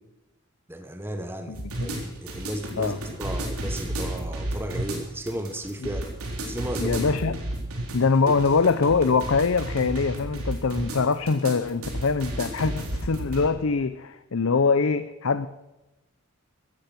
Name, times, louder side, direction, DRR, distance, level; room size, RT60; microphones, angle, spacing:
voice 1, 0.7-6.1 6.4-7.1 8.3-8.5, right 1 dB, 10° right, 6 dB, 1.0 m, -34 dB
voice 2, 1.5-2.0 2.8-3.0 6.8-7.4 7.9-15.5, left 4 dB, 70° left, 12 dB, 0.6 m, -23 dB
sound 1, 1.5-13.5, right 1 dB, 90° right, 3.8 m, -32 dB
15.5 x 12.0 x 6.0 m, 0.99 s
head